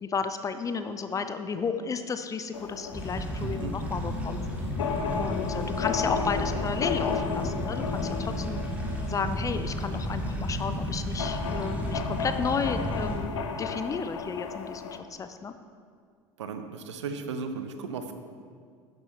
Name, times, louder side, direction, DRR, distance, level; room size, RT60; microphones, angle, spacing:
voice 1, 0.0-4.4 5.2-8.6 9.0-15.5, left 5 dB, 20° left, 10 dB, 0.5 m, -33 dB
sound 1, 2.5-15.0, left 6 dB, 70° left, 0.6 m, -35 dB
sound 2, 2.9-13.2, equal, 10° right, 1.9 m, -33 dB
sound 3, 3.1-8.6, left 2 dB, 85° right, 1.7 m, -49 dB
voice 2, 3.4-3.7 16.4-18.1, right 5 dB, 70° right, 8 dB, 0.7 m, -36 dB
11.0 x 7.5 x 3.2 m, 2.1 s
figure-of-eight pair, 70°, 16 cm